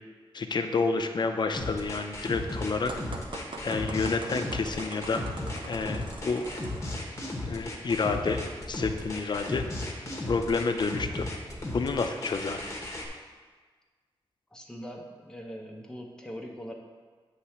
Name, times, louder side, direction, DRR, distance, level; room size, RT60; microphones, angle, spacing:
voice 1, 0.3-2.9 3.6-5.2 5.7-6.4 7.4-8.4 8.7-9.6 10.3-11.3 11.7-12.7, left 4 dB, 50° left, 6 dB, 0.5 m, -29 dB
sound 1, 1.5-13.1, left 1 dB, 30° left, 1.0 m, -35 dB
sound 2, 2.9-7.1, right 2 dB, 60° right, 0.7 m, -42 dB
voice 2, 14.5-16.7, equal, 5° left, 0 dB, 0.7 m, -41 dB
8.0 x 3.3 x 5.7 m, 1.5 s
wide cardioid pair, 140°, 10 cm